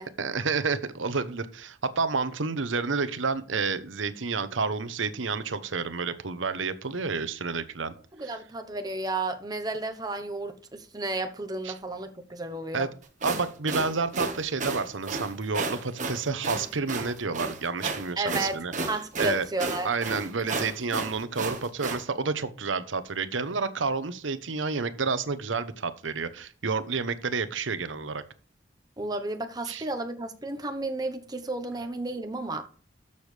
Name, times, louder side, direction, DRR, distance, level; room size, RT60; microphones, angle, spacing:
voice 1, 0.2-7.9 8.2-8.3 11.6-11.7 12.7-12.9 13.2-18.7 19.2-19.5 19.8-28.2 29.7-29.8, right 4 dB, 90° right, 0.9 m, -30 dB
voice 2, 8.1-12.9 18.2-18.6 18.9-19.9 29.0-32.6, right 2 dB, 20° right, 1.0 m, -32 dB
sound 1, 13.0-22.0, right 3 dB, 40° right, 1.5 m, -33 dB
13.0 x 6.9 x 3.4 m
head